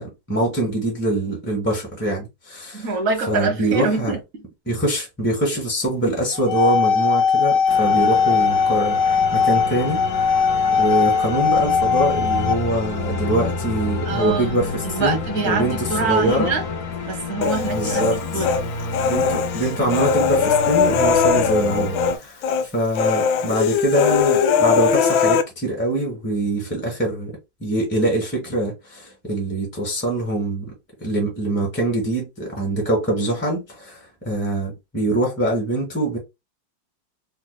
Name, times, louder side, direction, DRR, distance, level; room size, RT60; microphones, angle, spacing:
voice 1, 0.0-2.8 3.3-4.2 4.7-10.0 10.8-15.2 15.4-16.5 17.7-18.2 19.0-22.4 22.7-30.7 31.0-36.2, right 1 dB, 10° left, 0.8 m, -24 dB
voice 2, 2.7-4.4 5.5-5.6 14.0-16.7 17.0-18.5 23.5-23.7, right 4 dB, 50° right, 1.2 m, -25 dB
sound 1, 6.3-12.5, left 6 dB, 70° left, 1.2 m, -19 dB
sound 2, 7.7-22.2, left 3 dB, 50° left, 1.1 m, -29 dB
Human voice, 17.4-18.6 18.9-22.2 22.4-22.6 23.0-25.4, left 6 dB, 85° left, 1.4 m, -20 dB
4.5 x 2.7 x 2.2 m
omnidirectional pair, 2.1 m